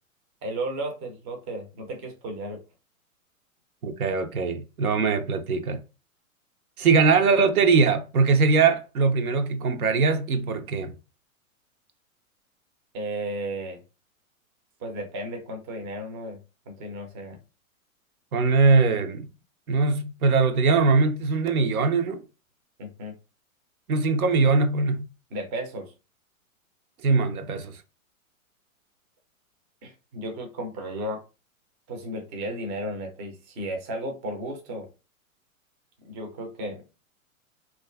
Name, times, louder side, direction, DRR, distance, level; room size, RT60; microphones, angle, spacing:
voice 1, 0.4-2.6 12.9-13.8 14.8-16.4 16.7-17.4 22.8-23.2 25.3-25.9 29.8-31.2 31.9-34.9 36.0-36.8, right 1 dB, 20° right, 0.3 m, -34 dB
voice 2, 3.8-5.8 6.8-10.9 18.3-19.3 19.7-22.2 23.9-25.1 27.0-27.8, right 4 dB, 90° right, 0.5 m, -21 dB
2.4 x 2.3 x 2.2 m
hypercardioid pair, 110°, 42 cm